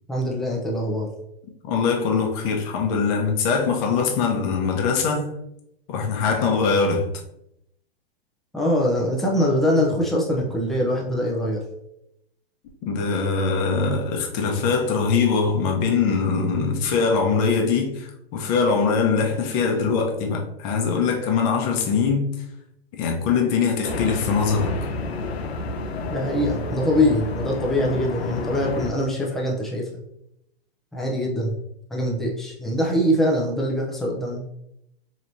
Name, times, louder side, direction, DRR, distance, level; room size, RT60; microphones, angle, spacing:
voice 1, 0.1-1.1 8.5-11.6 26.1-29.9 30.9-31.5 31.9-34.4, equal, ahead, 0.5 m, -23 dB
voice 2, 1.6-5.2 5.9-7.1 12.8-22.3 22.9-24.7, left 5 dB, 35° left, 0.9 m, -22 dB
sound 1, 23.8-28.9, left 3 dB, 85° left, 0.8 m, -30 dB
4.6 x 3.1 x 2.6 m
hypercardioid pair, 130°, 31 cm